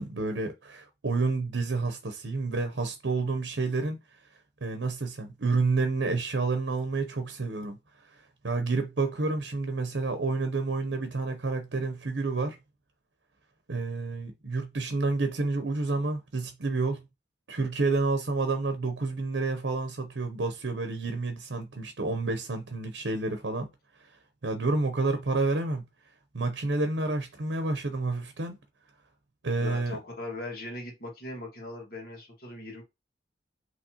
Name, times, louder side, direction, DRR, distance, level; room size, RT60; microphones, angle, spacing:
voice 1, 0.0-4.0 4.6-7.8 8.1-8.2 8.4-12.6 13.7-17.0 17.5-23.7 24.4-25.8 26.3-28.6 29.4-30.0, right 3 dB, 80° right, 0.8 m, -29 dB
voice 2, 29.6-32.8, left 2 dB, 55° left, 1.9 m, -39 dB
5.5 x 3.1 x 2.9 m
head